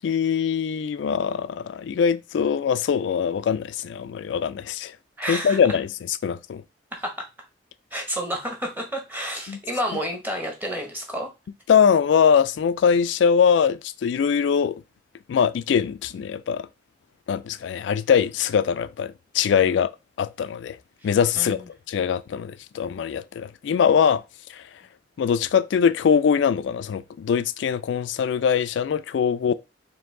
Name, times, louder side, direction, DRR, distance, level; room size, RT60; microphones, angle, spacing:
voice 1, 0.0-4.9 5.3-6.6 9.5-9.6 11.7-14.7 15.3-16.7 17.3-19.9 20.2-20.8 21.0-24.2 25.2-29.5, left 7 dB, 75° left, 0.3 m, -22 dB
voice 2, 5.2-5.6 6.9-7.3 7.9-11.3 21.0-21.1 21.4-21.6, equal, 10° right, 1.0 m, -30 dB
4.6 x 2.7 x 3.7 m
head